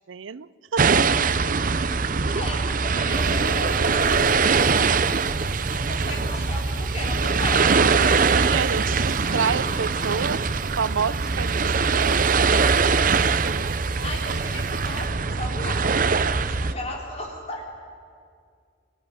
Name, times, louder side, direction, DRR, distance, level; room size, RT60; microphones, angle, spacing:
voice 1, 0.1-1.0 8.3-10.4 10.8-12.2, right 6 dB, 85° right, 17 dB, 0.6 m, -28 dB
sound 1, 0.8-16.7, right 5 dB, 45° right, 0.7 m, -22 dB
voice 2, 2.3-4.3 5.7-7.8 14.0-15.9 16.3-17.6, left 1 dB, 35° left, 0 dB, 4.0 m, -35 dB
sound 2, 3.1-15.0, right 1 dB, 5° right, 3.1 m, -48 dB
sound 3, 8.5-12.1, equal, 75° left, 7.3 m, -42 dB
24.0 x 16.0 x 9.7 m, 2.2 s
head